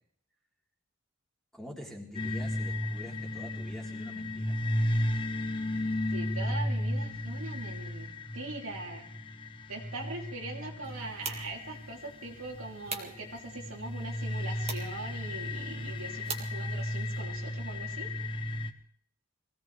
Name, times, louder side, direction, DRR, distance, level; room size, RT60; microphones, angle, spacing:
voice 1, 1.5-4.6, equal, ahead, -2 dB, 3.3 m, -46 dB
sound 1, 2.1-18.7, left 1 dB, 25° left, 1.0 m, -34 dB
voice 2, 6.1-9.1 9.7-18.4, right 2 dB, 85° right, -1 dB, 3.4 m, -42 dB
sound 2, 10.8-17.2, right 5 dB, 30° right, 2.1 m, -45 dB
23.5 x 17.0 x 3.4 m, 0.63 s
head